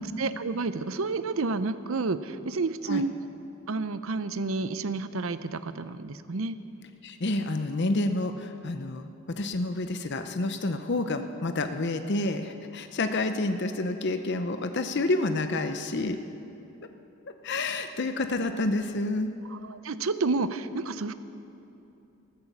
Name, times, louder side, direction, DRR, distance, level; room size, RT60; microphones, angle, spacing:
voice 1, 0.0-3.1 3.7-6.6 19.5-21.1, right 3 dB, 65° right, 12 dB, 0.6 m, -30 dB
voice 2, 7.0-9.1 9.4-16.2 17.4-19.3, left 2 dB, 50° left, 8 dB, 0.7 m, -29 dB
14.0 x 13.5 x 7.3 m, 2.8 s
head